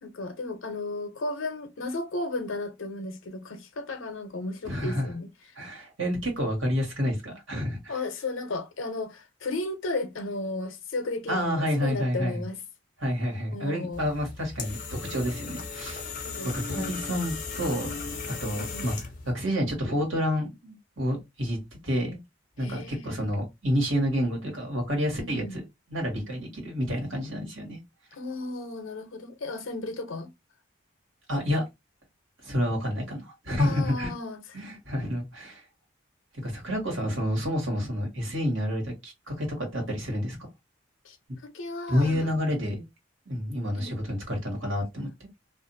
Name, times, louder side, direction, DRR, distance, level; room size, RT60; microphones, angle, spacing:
voice 1, 0.0-5.3 7.9-12.6 13.5-14.0 16.2-16.9 18.5-18.9 22.6-23.2 25.2-25.6 28.1-30.3 33.6-34.6 41.0-41.2 41.4-42.3 43.7-43.9, left 2 dB, 85° left, 0.7 m, -34 dB
voice 2, 4.7-5.1 5.5-7.9 11.3-12.4 13.0-14.8 15.1-16.1 16.5-18.0 18.4-18.9 19.3-21.6 21.8-22.2 22.6-25.6 25.9-27.8 31.3-31.6 32.4-34.1 34.5-35.6 36.4-40.4 41.3-41.4 41.9-42.8 43.3-45.1, equal, 80° right, 1.5 m, -29 dB
sound 1, 13.9-19.3, left 4 dB, 40° left, 0.6 m, -36 dB
2.5 x 2.5 x 2.6 m
head